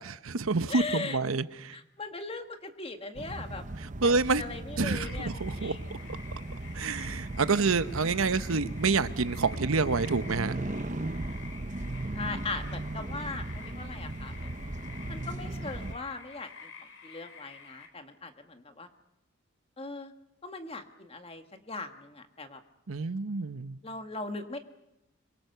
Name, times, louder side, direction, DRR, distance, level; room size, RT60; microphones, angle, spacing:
voice 1, 0.0-1.7 4.0-4.4 4.8-5.8 6.7-10.6 22.9-23.8, right 4 dB, 80° right, 0.9 m, -28 dB
voice 2, 0.7-1.2 1.7-3.6 4.0-5.9 12.1-14.7 15.1-16.7 17.0-18.9 19.8-20.1 20.4-22.6 23.8-24.6, left 3 dB, 25° left, 1.7 m, -39 dB
sound 1, 3.2-16.0, right 2 dB, 35° right, 0.8 m, -37 dB
sound 2, 4.9-17.9, left 6 dB, 65° left, 4.3 m, -49 dB
25.5 x 23.0 x 6.8 m
head